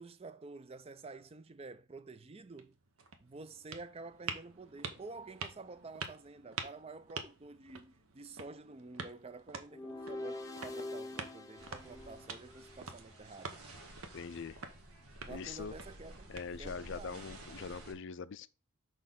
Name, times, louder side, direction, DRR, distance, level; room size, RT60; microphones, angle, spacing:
voice 1, 0.0-2.8 3.2-13.6 15.2-16.3 16.6-17.3, right 3 dB, 25° right, 0.4 m, -50 dB
sound 1, 2.5-17.0, right 5 dB, 70° right, 0.9 m, -48 dB
sound 2, 9.7-12.9, left 2 dB, 15° left, 0.6 m, -45 dB
sound 3, 11.6-17.9, right 1 dB, 85° right, 1.7 m, -52 dB
voice 2, 14.1-14.6 15.3-15.7 16.3-18.5, left 5 dB, 55° left, 0.4 m, -43 dB
6.3 x 5.0 x 3.7 m
head